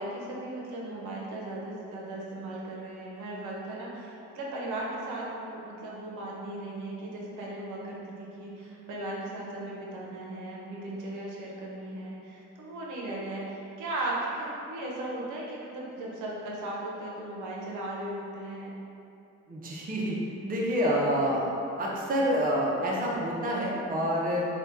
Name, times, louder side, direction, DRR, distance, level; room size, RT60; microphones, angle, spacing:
voice 1, 0.0-18.8, right 1 dB, 80° right, -4 dB, 0.6 m, -37 dB
voice 2, 19.5-20.2 20.5-21.5 21.8-24.5, equal, 30° right, -4 dB, 0.5 m, -27 dB
2.7 x 2.2 x 3.5 m, 2.7 s
cardioid pair, 90°, 30 cm